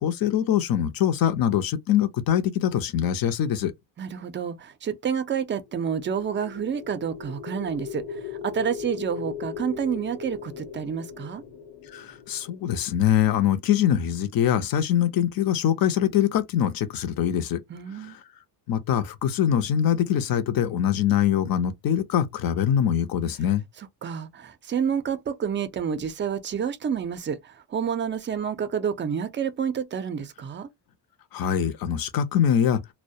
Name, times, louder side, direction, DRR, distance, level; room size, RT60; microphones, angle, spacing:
voice 1, 0.0-3.7 11.9-17.6 18.7-23.6 31.3-32.8, left 10 dB, 55° left, 0.6 m, -23 dB
voice 2, 4.0-11.4 17.7-18.2 23.8-30.7, right 7 dB, 30° right, 0.4 m, -29 dB
sound 1, 5.7-13.8, left 7 dB, 80° left, 1.0 m, -39 dB
2.2 x 2.1 x 2.6 m
cardioid pair, 110°, 43 cm